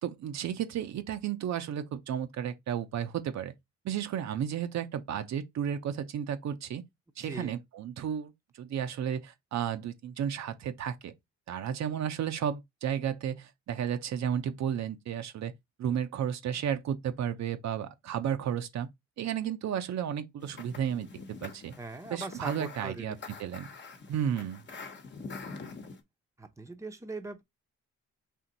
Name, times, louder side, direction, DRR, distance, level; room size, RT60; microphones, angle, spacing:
voice 1, 0.0-3.5 3.8-6.8 7.2-8.3 8.6-11.1 11.5-15.5 15.8-18.9 19.2-21.1 21.4-21.7 22.1-23.7 24.1-24.6, right 9 dB, 65° right, 0.8 m, -33 dB
voice 2, 7.2-7.6 21.8-23.2 26.4-27.4, right 3 dB, 10° right, 0.8 m, -40 dB
sound 1, 20.4-26.0, left 4 dB, 35° left, 1.0 m, -45 dB
4.5 x 2.8 x 3.9 m
cardioid pair, 90°, 30 cm